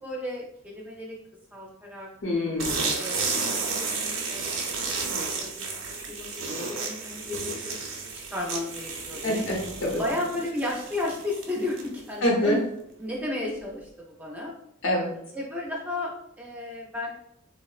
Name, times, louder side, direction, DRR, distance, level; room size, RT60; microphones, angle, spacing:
voice 1, 0.0-1.2 1.5-2.1 2.9-4.4 4.8-9.5 10.0-12.6 13.0-14.5 15.3-17.2, left 2 dB, 10° right, -2 dB, 0.4 m, -34 dB
voice 2, 2.2-2.9 9.2-10.0 12.2-12.6 14.8-15.2, left 1 dB, 75° left, -2 dB, 0.7 m, -25 dB
sound 1, 2.6-12.1, right 4 dB, 80° right, 0.5 m, -32 dB
3.6 x 2.0 x 2.3 m, 0.72 s
head